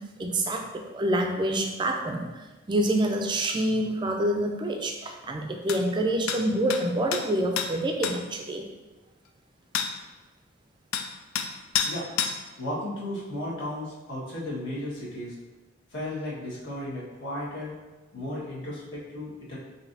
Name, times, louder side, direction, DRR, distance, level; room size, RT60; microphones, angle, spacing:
voice 1, 0.0-8.6, right 1 dB, 20° right, 3 dB, 0.3 m, -27 dB
sound 1, 5.7-5.8 6.3-6.4 6.7-6.8 7.1-7.2 7.6-7.7 8.0-8.2 9.7-9.9 10.9-11.1 11.3-11.5 11.7-11.9 12.2-12.4, left 8 dB, 80° left, 0.3 m, -27 dB
voice 2, 12.6-15.4 15.9-17.7 18.1-19.6, left 1 dB, 60° left, -7 dB, 1.4 m, -34 dB
5.2 x 2.7 x 2.6 m, 1.2 s
head